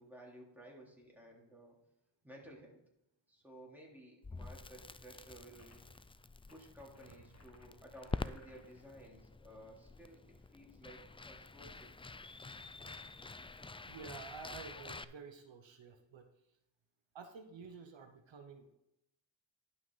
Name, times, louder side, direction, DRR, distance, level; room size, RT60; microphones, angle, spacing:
voice 1, 0.0-1.8 2.2-2.8 3.3-5.8 6.5-11.0 11.3-11.9, right 1 dB, 5° right, -3 dB, 3.5 m, -55 dB
Crackle, 4.2-15.0, left 3 dB, 15° left, 0.3 m, -48 dB
sound 1, 5.6-6.0 6.4-8.9, left 2 dB, 35° left, 1.7 m, -65 dB
voice 2, 13.8-16.3 17.1-18.7, right 5 dB, 75° right, 6 dB, 1.0 m, -51 dB
11.5 x 5.7 x 4.1 m, 0.83 s
cardioid pair, 50°, 45 cm